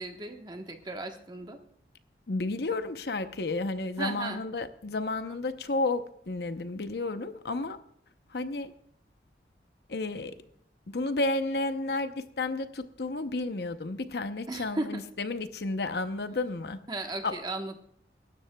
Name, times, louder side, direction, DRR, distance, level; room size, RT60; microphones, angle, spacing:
voice 1, 0.0-1.6 4.0-4.4 14.5-15.0 16.9-17.8, right 2 dB, 25° right, 4 dB, 1.1 m, -35 dB
voice 2, 2.3-7.8 8.3-8.7 9.9-10.4 10.9-16.8 17.2-17.4, left 2 dB, 65° left, 10 dB, 0.7 m, -32 dB
24.5 x 12.5 x 2.3 m, 0.70 s
head